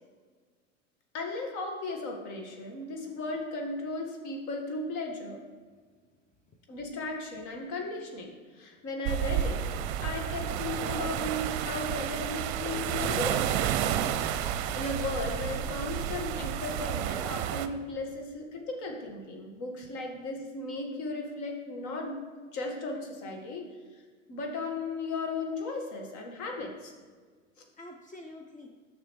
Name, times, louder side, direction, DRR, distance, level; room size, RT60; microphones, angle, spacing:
voice 1, 1.1-5.4 6.7-9.6 10.0-13.5 14.7-22.2 22.5-23.7 24.3-26.9, left 2 dB, 50° left, 2 dB, 1.6 m, -36 dB
sound 1, 9.1-17.7, right 10 dB, 60° right, 0.6 m, -31 dB
voice 2, 12.7-13.2 27.8-28.7, left 2 dB, 20° left, 2 dB, 0.7 m, -46 dB
9.2 x 6.2 x 3.1 m, 1.5 s
hypercardioid pair, 85°, 38 cm